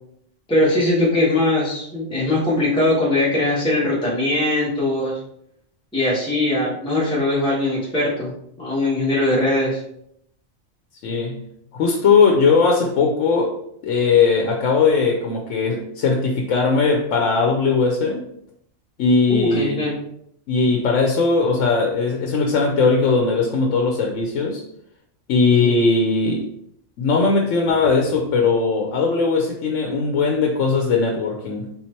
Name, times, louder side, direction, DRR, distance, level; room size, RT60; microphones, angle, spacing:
voice 1, 0.5-5.2 5.9-8.3 8.6-9.8 19.3-19.9 25.5-25.7, left 1 dB, 5° left, -6 dB, 1.3 m, -20 dB
voice 2, 11.0-11.4 11.7-13.5 13.8-18.2 19.0-19.9 20.5-24.6 25.3-26.5 27.0-31.7, left 4 dB, 90° left, 2 dB, 1.0 m, -19 dB
4.3 x 4.1 x 3.0 m, 0.72 s
omnidirectional pair, 1.2 m